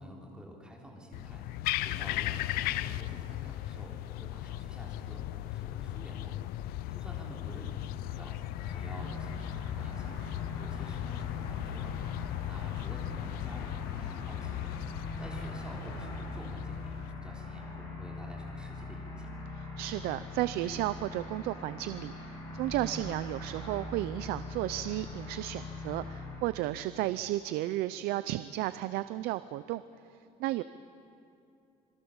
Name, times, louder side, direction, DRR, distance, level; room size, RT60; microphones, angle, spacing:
voice 1, 0.0-1.5 1.8-8.4 8.7-11.9 12.2-14.7 15.2-19.4, equal, 5° right, -2 dB, 3.8 m, -49 dB
sound 1, 1.1-17.1, left 14 dB, 70° left, 0.6 m, -37 dB
sound 2, 8.6-26.4, left 2 dB, 30° left, 6.2 m, -42 dB
voice 2, 19.6-29.8 30.4-30.6, right 15 dB, 75° right, 14 dB, 0.6 m, -33 dB
27.5 x 21.5 x 7.2 m, 2.6 s
cardioid pair, 180°, 16 cm